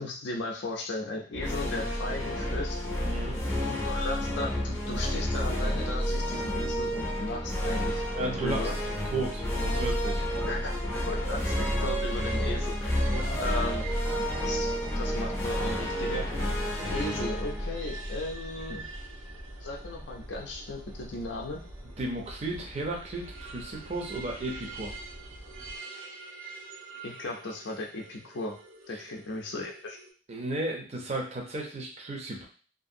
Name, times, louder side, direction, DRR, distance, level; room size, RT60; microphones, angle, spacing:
voice 1, 0.0-2.8 3.6-8.0 8.4-8.8 10.5-10.7 11.1-13.1 13.4-13.8 14.4-16.3 16.9-18.8 19.6-21.6 27.0-28.6 28.9-30.0, left 2 dB, 65° left, 0 dB, 0.5 m, -36 dB
sound 1, 1.3-18.8, equal, 15° left, 0.5 m, -30 dB
voice 2, 3.0-3.4 8.1-8.7 9.1-10.2 13.0-13.3 22.0-24.9 28.9-29.0 30.3-32.5, right 2 dB, 35° right, 0 dB, 0.5 m, -34 dB
sound 2, 8.8-25.8, right 1 dB, 70° right, 1.0 m, -45 dB
sound 3, 10.3-30.1, right 4 dB, 90° right, 0.6 m, -47 dB
2.7 x 2.5 x 2.6 m, 0.40 s
head